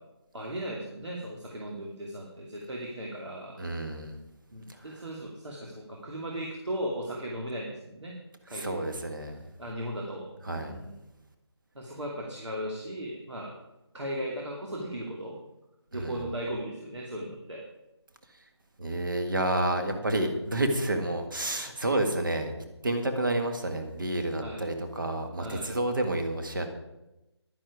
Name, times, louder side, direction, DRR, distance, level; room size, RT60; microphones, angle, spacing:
voice 1, 0.3-3.6 4.5-8.2 8.5-8.8 9.6-11.0 11.7-13.5 13.9-15.4 15.9-17.6 24.4-24.6 25.4-25.7, equal, 85° right, -1 dB, 2.6 m, -37 dB
voice 2, 3.6-4.2 8.6-9.4 10.5-10.7 15.9-16.2 18.8-22.5 22.8-26.7, right 1 dB, 45° right, 6 dB, 1.8 m, -29 dB
11.0 x 10.5 x 4.8 m, 0.95 s
figure-of-eight pair, 175°, 14 cm